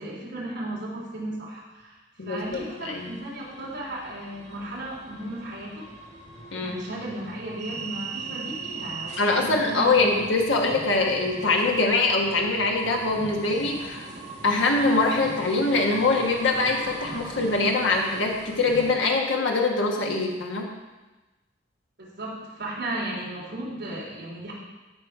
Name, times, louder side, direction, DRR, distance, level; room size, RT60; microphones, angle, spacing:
voice 1, 0.0-2.0 2.2-5.8 6.6-10.2 22.0-24.5, right 1 dB, 60° right, -6 dB, 3.4 m, -35 dB
voice 2, 2.2-3.1 6.5-6.8 9.2-14.1 14.4-20.7, left 3 dB, 80° left, 1 dB, 1.2 m, -23 dB
sound 1, 2.4-18.9, right 3 dB, 40° right, 1.7 m, -40 dB
14.5 x 5.0 x 4.8 m, 1.1 s
head